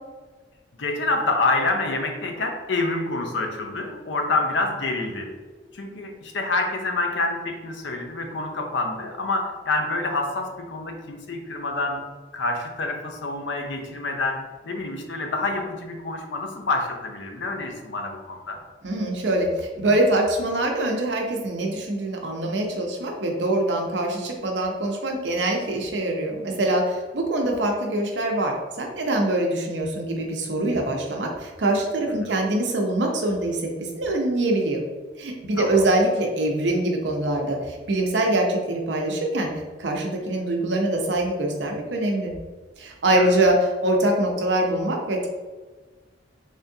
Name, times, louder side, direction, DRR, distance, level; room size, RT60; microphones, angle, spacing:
voice 1, 0.8-5.3 5.7-12.1 12.3-18.6 32.3-32.4 35.6-35.8 43.1-43.3, left 2 dB, 85° left, 4 dB, 0.6 m, -27 dB
voice 2, 18.8-33.6 33.9-34.8 35.2-39.5 39.8-42.3 42.8-45.3, right 1 dB, 75° right, 1 dB, 0.7 m, -24 dB
3.6 x 3.4 x 2.7 m, 1.4 s
head